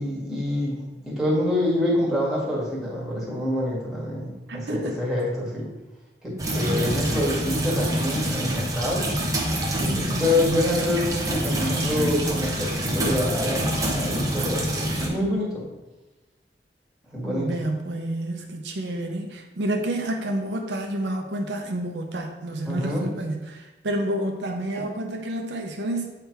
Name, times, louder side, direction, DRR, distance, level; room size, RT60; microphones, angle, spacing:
voice 1, 0.0-5.7 6.2-9.1 9.8-15.6 17.1-17.5 22.6-23.0, left 1 dB, ahead, -6 dB, 1.9 m, -26 dB
voice 2, 4.5-4.9 9.9-10.3 17.3-26.1, right 1 dB, 80° right, 2 dB, 0.8 m, -29 dB
sound 1, 6.4-15.1, right 1 dB, 20° right, 1.0 m, -26 dB
8.4 x 3.4 x 4.5 m, 1.1 s
head